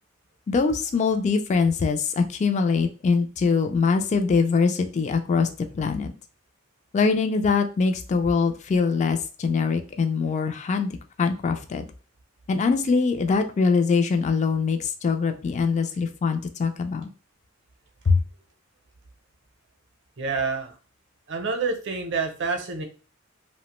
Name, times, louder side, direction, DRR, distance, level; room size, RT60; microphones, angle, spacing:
voice 1, 0.5-5.5 5.7-6.1 6.9-11.8 12.5-17.1 18.1-18.2, left 4 dB, 35° left, 7 dB, 0.3 m, -23 dB
voice 2, 20.2-20.7 21.3-22.8, right 4 dB, 60° right, 5 dB, 0.6 m, -27 dB
2.8 x 2.1 x 3.0 m, 0.35 s
head